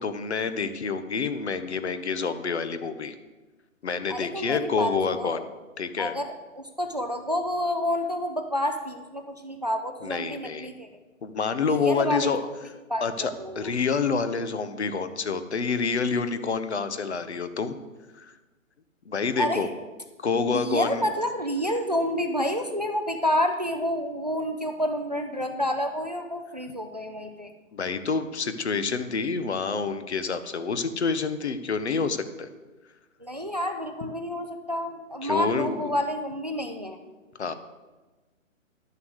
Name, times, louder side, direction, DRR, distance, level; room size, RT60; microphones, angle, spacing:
voice 1, 0.0-3.1 3.8-5.5 5.8-6.1 10.0-10.7 11.2-12.4 13.0-17.8 18.1-18.3 19.1-19.7 20.2-21.0 27.7-32.5 35.2-35.9 37.4-37.5, left 5 dB, 55° left, 11 dB, 0.9 m, -28 dB
voice 2, 4.1-5.4 6.0-10.9 11.7-12.5 12.9-13.7 19.4-19.7 20.4-27.5 33.2-37.0, equal, 30° right, 5 dB, 0.5 m, -29 dB
11.0 x 6.9 x 6.4 m, 1.2 s
hypercardioid pair, 180°, 41 cm